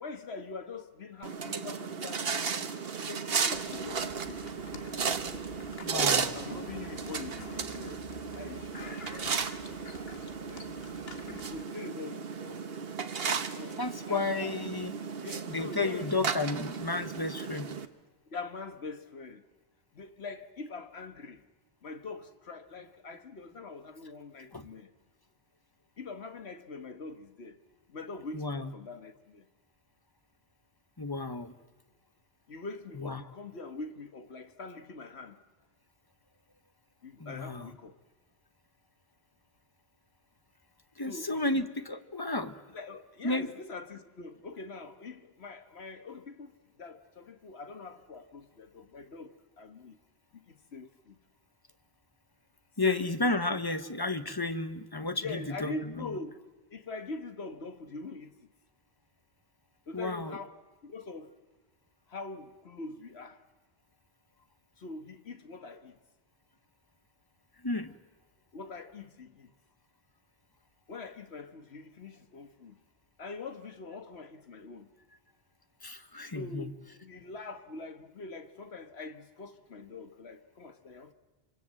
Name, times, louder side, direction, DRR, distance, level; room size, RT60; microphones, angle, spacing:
voice 1, 0.0-2.7 3.0-4.4 6.3-8.0 8.3-9.0 9.9-10.7 11.3-12.7 13.3-14.5 15.2-16.1 18.3-19.4 19.9-21.4 21.8-24.9 26.0-27.6 27.9-29.5 32.5-35.4 37.0-38.0 41.1-41.7 42.7-50.0 50.5-51.2 52.8-53.4 55.2-56.4 56.7-58.5 59.9-61.3 62.1-63.4 64.8-66.0 68.5-69.5 70.9-72.8 73.2-74.9 76.3-81.1, left 3 dB, 90° left, 1.8 m, -43 dB
sound 1, 1.2-17.9, right 5 dB, 70° right, 1.3 m, -35 dB
sound 2, 3.5-11.7, left 4 dB, 70° left, 1.8 m, -49 dB
voice 2, 5.8-6.4 13.8-14.9 15.5-17.7 24.5-24.7 28.3-28.7 31.0-31.5 33.0-33.2 37.2-37.7 41.0-42.6 43.2-43.5 52.8-56.2 59.9-60.4 67.6-68.0 75.8-76.7, left 2 dB, 20° left, 1.1 m, -32 dB
26.0 x 25.0 x 7.7 m
omnidirectional pair, 1.0 m